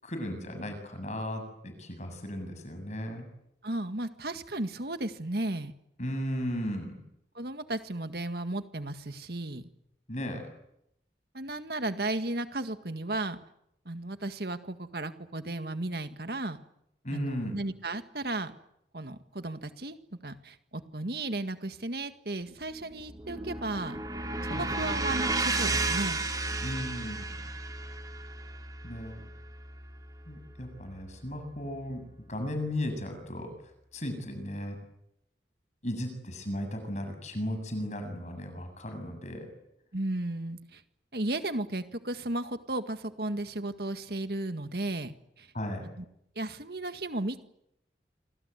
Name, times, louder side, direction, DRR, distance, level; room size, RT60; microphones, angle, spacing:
voice 1, 0.0-3.3 6.0-7.0 10.1-10.4 17.0-17.6 24.5-24.9 26.6-27.5 28.8-29.2 30.3-33.5 33.9-34.8 35.8-39.5 45.5-45.8, left 1 dB, 40° left, 6 dB, 7.5 m, -36 dB
voice 2, 3.6-5.7 7.4-9.6 11.3-13.4 13.9-16.6 17.1-18.5 18.9-20.0 20.2-24.0 24.4-26.2 39.9-40.8 41.1-45.5 46.0-46.1 46.4-47.4, right 2 dB, 60° right, 9 dB, 1.9 m, -34 dB
sound 1, 22.6-30.9, right 2 dB, 20° right, 3.2 m, -33 dB
28.0 x 25.5 x 8.3 m, 0.78 s
head